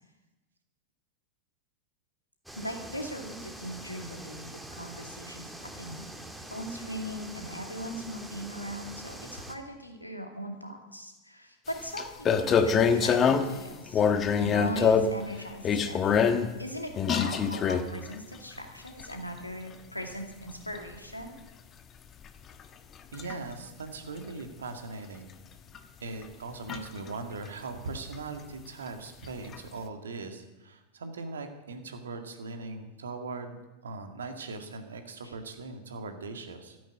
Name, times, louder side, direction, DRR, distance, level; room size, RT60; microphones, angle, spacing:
sound 1, 2.5-9.6, right 1 dB, 5° right, 1.9 m, -44 dB
voice 1, 2.6-5.5 5.8-6.1 6.5-14.0 14.4-16.2 16.6-21.3 35.2-35.4, right 1 dB, 85° left, 3 dB, 2.4 m, -39 dB
sound 2, 11.7-11.8 12.0-13.6 13.9-15.2 15.6-16.5 17.0-18.1 18.9-19.1 20.8-21.0 22.6-22.7 23.1-23.3 25.7-25.8 26.2-26.3 26.7-27.1 29.5-29.6, left 6 dB, 25° left, 1.2 m, -24 dB
voice 2, 23.1-25.3 26.0-36.8, right 3 dB, 65° right, 6 dB, 2.1 m, -40 dB
13.5 x 10.5 x 8.5 m, 1.1 s
figure-of-eight pair, 90°, 0 cm